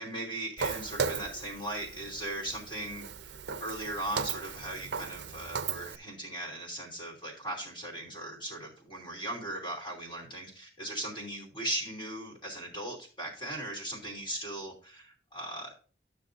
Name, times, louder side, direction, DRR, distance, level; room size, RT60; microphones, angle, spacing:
voice 1, 0.0-15.8, right 1 dB, 25° left, -1 dB, 3.2 m, -38 dB
Walk footsteps, 0.6-6.0, right 6 dB, 70° right, 0.5 m, -37 dB
12.5 x 6.7 x 2.7 m, 0.37 s
head